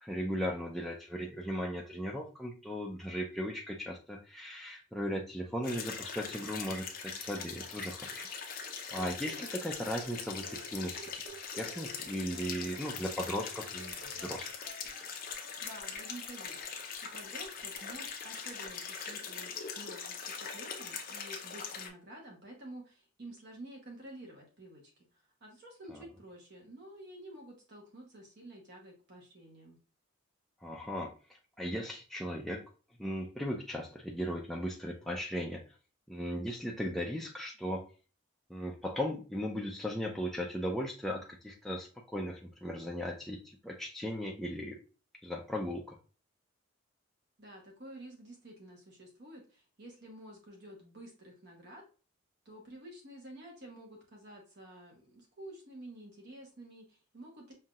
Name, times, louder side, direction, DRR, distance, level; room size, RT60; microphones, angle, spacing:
voice 1, 0.0-8.3 8.9-11.0 11.5-14.5 25.9-26.0 30.6-31.1 31.6-32.6 33.0-35.6 36.1-37.9 38.5-44.8 45.2-46.0, equal, ahead, -1 dB, 0.4 m, -37 dB
sound 1, 5.6-21.9, left 6 dB, 40° left, 0.6 m, -42 dB
sound 2, 8.9-18.7, right 2 dB, 85° right, 1.0 m, -54 dB
voice 2, 15.6-29.8 47.4-51.9 52.4-57.5, right 1 dB, 50° right, -1 dB, 1.1 m, -50 dB
5.6 x 2.7 x 2.4 m, 0.35 s
head